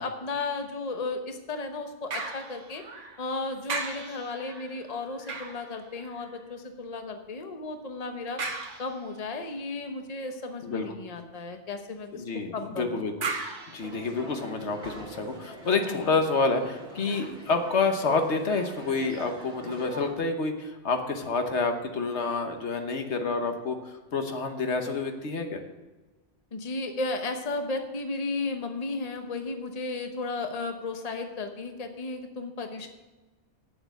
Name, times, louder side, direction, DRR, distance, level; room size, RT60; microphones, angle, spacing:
voice 1, 0.0-2.8 3.2-8.4 8.8-12.2 12.5-13.0 15.9-16.1 26.5-32.9, left 3 dB, 35° left, 5 dB, 1.1 m, -34 dB
sound 1, 2.1-3.3 3.7-6.5 8.4-9.3 13.2-14.7 15.2-15.3, right 4 dB, 90° right, 1.6 m, -37 dB
voice 2, 12.1-13.3 13.7-25.6, left 4 dB, 70° left, 5 dB, 1.4 m, -28 dB
sound 2, 13.8-20.1, right 1 dB, 40° right, 2.8 m, -44 dB
8.7 x 7.7 x 8.2 m, 1.2 s
omnidirectional pair, 1.2 m